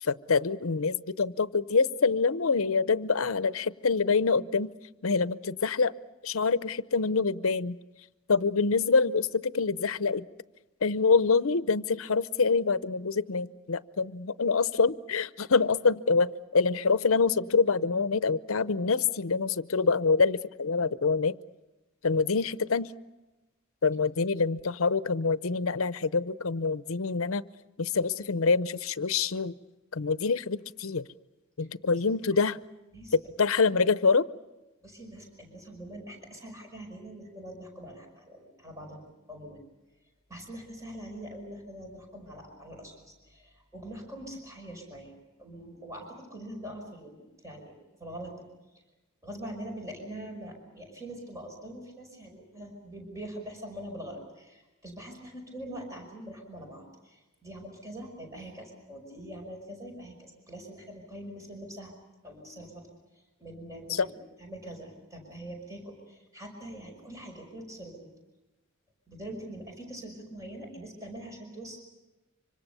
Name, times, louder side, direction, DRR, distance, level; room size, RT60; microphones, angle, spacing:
voice 1, 0.0-4.7 5.0-5.9 6.2-7.8 8.3-10.3 10.8-21.3 22.0-22.9 23.8-27.4 27.8-29.5 29.9-31.1 31.6-32.6 33.1-34.3 63.9-64.1, left 4 dB, 70° left, 16 dB, 0.7 m, -26 dB
voice 2, 34.8-39.6 40.3-45.1 45.4-47.7 48.0-48.4 49.2-61.9 62.2-62.9 63.1-64.1 64.4-68.1 69.1-71.8, right 1 dB, 15° right, 1 dB, 5.5 m, -43 dB
25.5 x 25.5 x 6.9 m, 1.1 s
head